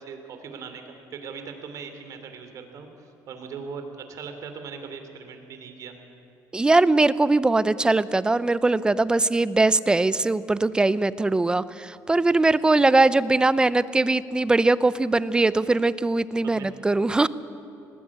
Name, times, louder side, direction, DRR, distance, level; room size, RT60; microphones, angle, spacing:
voice 1, 0.0-5.9 16.4-16.7, right 5 dB, 55° right, 6 dB, 3.0 m, -39 dB
voice 2, 6.5-17.3, right 2 dB, 15° right, 17 dB, 0.6 m, -21 dB
19.5 x 18.5 x 8.6 m, 2.8 s
cardioid pair, 120°, 7 cm